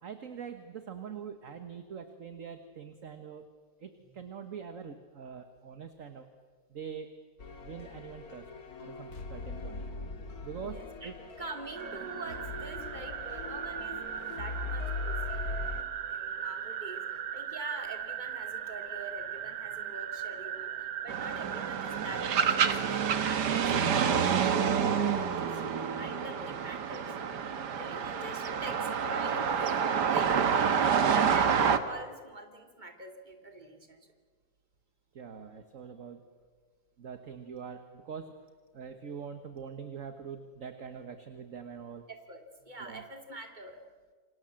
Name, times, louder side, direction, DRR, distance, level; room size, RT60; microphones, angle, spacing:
voice 1, 0.0-3.5 3.8-6.3 6.7-7.1 7.6-8.5 8.8-9.8 10.4-11.1 35.1-36.2 37.0-38.3 38.7-42.1 42.8-43.0, right 7 dB, 45° right, 8 dB, 1.6 m, -43 dB
sound 1, 7.4-15.8, left 3 dB, 55° left, 2.4 m, -40 dB
voice 2, 10.6-11.1 11.4-17.1 17.3-27.4 27.8-34.1 42.1-43.8, right 2 dB, 25° right, 5 dB, 2.9 m, -45 dB
sound 2, 11.8-23.4, right 9 dB, 90° right, 1.9 m, -38 dB
sound 3, 21.1-31.8, right 7 dB, 65° right, 1.9 m, -28 dB
28.0 x 25.0 x 7.7 m, 1.5 s
omnidirectional pair, 2.0 m